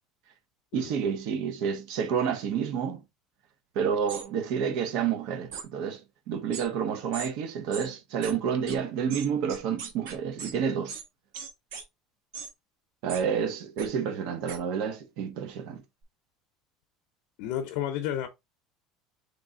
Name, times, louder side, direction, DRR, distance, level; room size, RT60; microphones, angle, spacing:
voice 1, 0.7-3.0 3.7-11.0 13.0-15.8, right 7 dB, 55° right, 0.8 m, -29 dB
sound 1, 4.1-4.2 5.5-5.7 6.5-6.7 7.1-7.3 7.7-7.9 8.2-8.3 8.7-8.8 9.1-10.5 10.9-11.0 11.3-11.8 12.3-12.5 13.1-13.2 13.8-13.9 14.5-14.6, right 6 dB, 80° right, 1.2 m, -39 dB
voice 2, 17.4-18.3, left 11 dB, 60° left, 0.6 m, -31 dB
3.7 x 3.3 x 3.8 m
cardioid pair, 175°, 0 cm